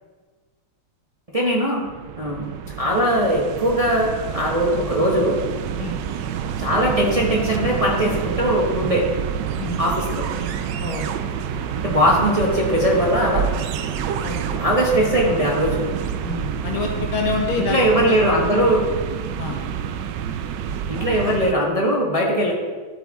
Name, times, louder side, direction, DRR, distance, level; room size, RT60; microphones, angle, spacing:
voice 1, 1.3-1.8 2.1-2.5 2.8-5.4 6.6-9.1 9.8-10.3 11.7-13.5 14.5-15.8 17.6-18.8 20.9-22.5, equal, 25° right, -3 dB, 1.0 m, -20 dB
sound 1, 1.8-21.5, right 8 dB, 70° right, 1.1 m, -28 dB
voice 2, 16.2-18.2 19.4-19.6, left 4 dB, 90° left, 0 dB, 2.3 m, -27 dB
11.5 x 8.2 x 3.6 m, 1.4 s
omnidirectional pair, 2.2 m